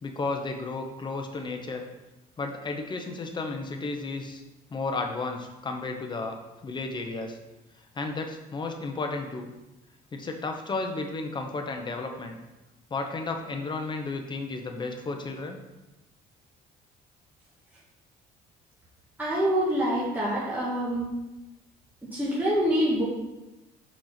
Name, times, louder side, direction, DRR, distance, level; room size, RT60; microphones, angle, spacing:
voice 1, 0.0-1.9 2.4-4.4 4.7-6.4 6.6-7.4 7.9-9.5 10.1-12.4 12.9-15.6, left 3 dB, 25° left, 4 dB, 1.0 m, -33 dB
voice 2, 19.2-21.1 22.0-23.0, equal, 10° right, -7 dB, 1.7 m, -26 dB
5.2 x 4.4 x 5.9 m, 1.0 s
cardioid pair, 110°, 17 cm